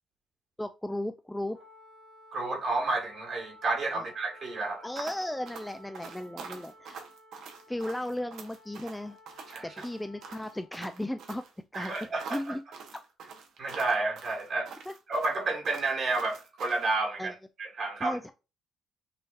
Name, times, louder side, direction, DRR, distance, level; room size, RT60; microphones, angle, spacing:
voice 1, 0.6-1.6 3.9-4.0 4.8-7.0 7.7-9.2 9.6-11.4 11.7-11.9 12.3-12.6 14.9-15.0 17.2-17.3 18.0-18.3, left 1 dB, 5° left, 0.3 m, -35 dB
Wind instrument woodwind instrument, 1.5-10.7, left 1 dB, 25° right, 1.2 m, -54 dB
voice 2, 2.3-4.9 9.5-9.7 11.7-12.5 13.6-14.8 15.1-18.2, right 3 dB, 45° right, 1.5 m, -31 dB
sound 1, 5.0-16.9, right 5 dB, 75° right, 0.9 m, -45 dB
5.7 x 2.7 x 2.5 m
cardioid pair, 120°, 0 cm